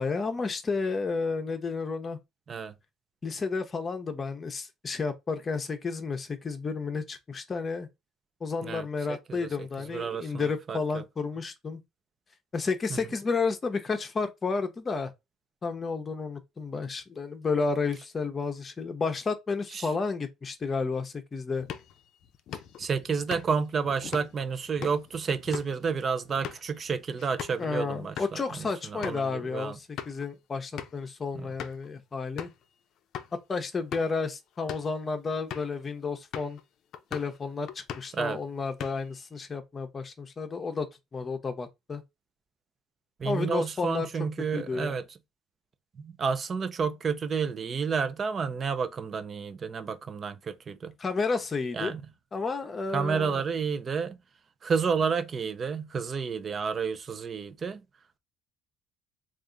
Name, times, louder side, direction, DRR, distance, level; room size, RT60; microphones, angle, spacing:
voice 1, 0.0-2.2 3.2-7.9 8.4-11.8 12.5-15.1 15.6-21.7 27.6-32.5 33.5-36.6 37.1-40.9 41.1-42.0 43.2-44.1 44.5-45.0 51.0-51.9 52.3-53.4, left 4 dB, 30° left, 0.8 m, -31 dB
voice 2, 8.6-9.5 9.9-10.8 19.7-19.9 22.8-29.8 31.3-31.5 38.1-38.4 43.2-45.0 46.0-50.9 51.7-52.0 52.9-54.2 54.6-57.8, right 5 dB, 35° right, 0.5 m, -30 dB
sound 1, 21.6-27.7 28.0-28.3 28.7-28.8 29.0-29.2 29.7-30.3 30.8-31.1 31.6-31.9 32.4-32.6 33.1-33.3 33.8-34.2 34.6-34.9 35.5-35.8 36.3-36.6 36.9-37.4 37.7-38.2 38.6-39.2, left 9 dB, 60° left, 0.5 m, -41 dB
3.5 x 2.5 x 3.8 m
cardioid pair, 110°, 0 cm